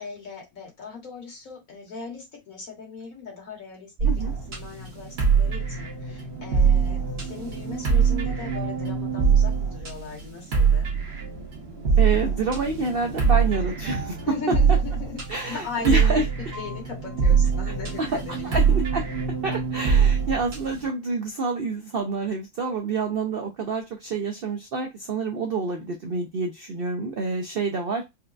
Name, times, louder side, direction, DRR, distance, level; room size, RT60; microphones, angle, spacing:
voice 1, 0.0-3.9 4.5-10.9 14.3-15.2 15.5-16.2 16.5-18.7, left 5 dB, 65° left, -1 dB, 1.9 m, -38 dB
sound 1, 4.0-20.9, right 6 dB, 45° right, 1.2 m, -24 dB
voice 2, 12.0-14.2 15.3-16.3 18.0-18.1 18.4-19.0 19.4-28.0, right 4 dB, 65° right, 3 dB, 0.5 m, -28 dB
4.4 x 2.2 x 2.4 m, 0.20 s
omnidirectional pair, 1.6 m